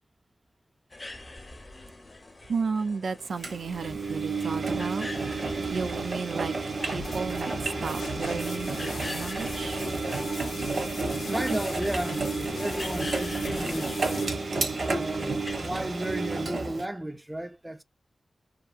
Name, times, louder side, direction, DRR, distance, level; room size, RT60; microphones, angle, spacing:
sound 1, 0.9-15.7, left 2 dB, 35° left, 0.7 m, -44 dB
voice 1, 2.5-5.1 5.7-6.5 6.9-9.9 11.3-11.4, right 5 dB, 90° right, 0.3 m, -33 dB
Engine, 3.4-16.8, right 3 dB, 70° right, 0.8 m, -31 dB
sound 2, 6.8-14.3, left 3 dB, 85° left, 0.6 m, -39 dB
voice 2, 11.3-14.0 14.8-17.8, right 1 dB, 15° right, 0.4 m, -34 dB
2.7 x 2.4 x 2.3 m
wide cardioid pair, 70°, 0 cm